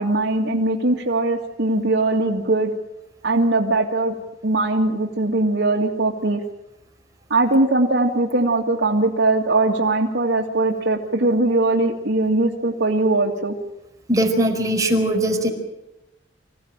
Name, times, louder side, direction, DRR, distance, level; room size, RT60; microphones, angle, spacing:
voice 1, 0.0-2.7 3.2-4.1 4.4-6.4 7.3-13.5, right 2 dB, 80° right, -2 dB, 2.2 m, -20 dB
voice 2, 14.1-15.5, right 1 dB, 20° right, 2 dB, 4.8 m, -20 dB
26.0 x 16.5 x 8.9 m, 0.94 s
head